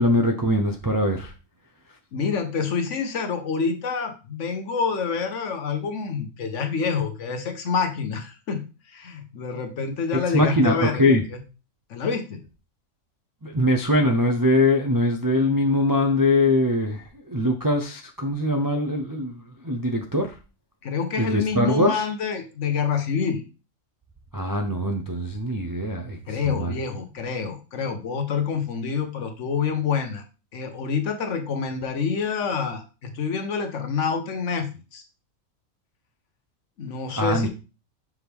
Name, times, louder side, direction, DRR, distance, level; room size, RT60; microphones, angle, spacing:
voice 1, 0.0-1.3 10.3-11.2 13.4-20.3 21.2-22.1 24.3-26.7 37.2-37.5, left 1 dB, 30° right, 2 dB, 0.4 m, -22 dB
voice 2, 2.1-11.4 11.9-12.4 20.8-23.5 26.3-30.2 30.5-35.0 36.8-37.5, left 5 dB, 65° left, 6 dB, 1.2 m, -27 dB
6.0 x 4.8 x 3.4 m, 0.31 s
omnidirectional pair, 1.4 m